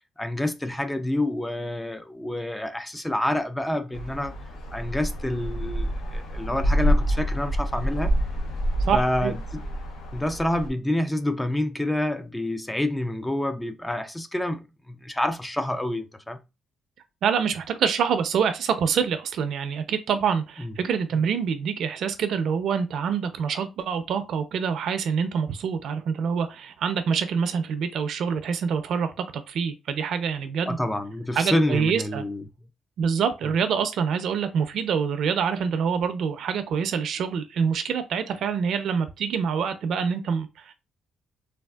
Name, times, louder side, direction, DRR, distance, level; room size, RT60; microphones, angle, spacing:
voice 1, 0.2-4.3 4.7-8.1 8.9-9.6 10.1-16.4 20.6-20.7 30.7-32.4, left 1 dB, 10° left, 0.3 m, -28 dB
sound 1, 3.9-10.7, equal, 90° left, 0.8 m, -27 dB
voice 2, 8.9-9.3 17.2-30.8 31.4-32.2 33.0-40.7, right 6 dB, 65° right, 0.5 m, -26 dB
3.4 x 2.3 x 2.3 m
cardioid pair, 130°, 0 cm